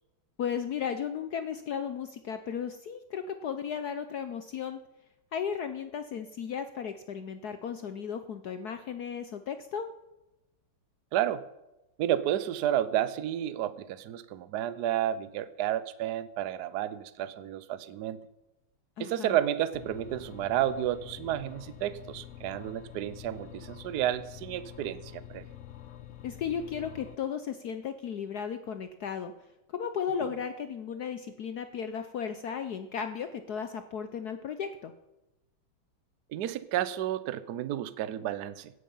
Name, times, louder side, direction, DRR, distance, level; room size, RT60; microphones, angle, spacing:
voice 1, 0.4-4.8 5.3-9.9 19.0-19.4 26.2-29.3 29.7-34.9, left 7 dB, 65° left, 9 dB, 1.0 m, -35 dB
voice 2, 11.1-11.5 12.0-18.2 19.0-25.4 36.3-38.7, right 12 dB, 65° right, 15 dB, 1.1 m, -31 dB
sound 1, 19.7-27.2, left 12 dB, 80° left, 0.6 m, -47 dB
16.5 x 10.0 x 5.5 m, 0.96 s
omnidirectional pair, 2.4 m